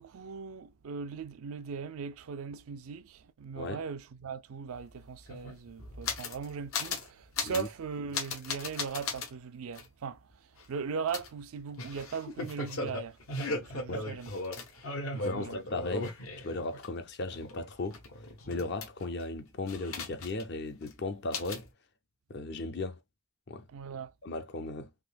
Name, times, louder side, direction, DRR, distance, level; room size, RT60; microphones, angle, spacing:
voice 1, 0.0-10.3 10.7-13.2 13.5-14.8 15.1-15.6 23.7-24.1, right 6 dB, 80° right, 0.4 m, -39 dB
sound 1, 4.7-4.8 5.0-6.4 6.7-7.1 7.3-7.7 8.1-9.3 9.7-9.9 11.1-16.9 17.2-19.2 19.7-20.5 20.8-20.9 21.3-21.7, left 3 dB, 80° left, 0.9 m, -37 dB
voice 2, 15.2-18.0 18.5-21.7 22.3-23.0 23.5-23.7 24.2-24.9, left 3 dB, 50° left, 0.5 m, -36 dB
3.6 x 2.7 x 2.4 m
head